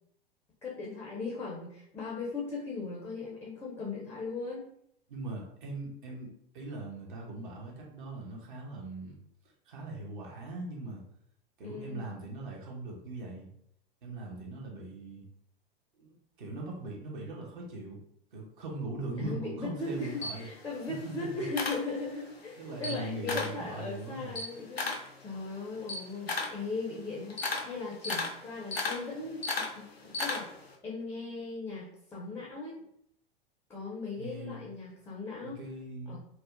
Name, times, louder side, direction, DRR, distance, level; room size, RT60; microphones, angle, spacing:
voice 1, 0.6-4.6 11.6-12.1 19.2-30.5 30.8-32.8 33.7-35.6 36.1-36.2, left 3 dB, 10° left, -4 dB, 0.4 m, -38 dB
voice 2, 5.1-9.1 9.7-11.0 11.6-13.5 14.0-15.3 16.0-18.0 18.3-20.5 20.9-21.4 22.6-24.4 34.2-34.7 35.4-36.2, right 2 dB, 55° right, -2 dB, 0.8 m, -40 dB
Camera, 19.8-22.4 22.7-23.6 24.0-30.7, left 3 dB, 90° left, 0.5 m, -36 dB
2.7 x 2.1 x 2.4 m, 0.70 s
figure-of-eight pair, 90°, 30 cm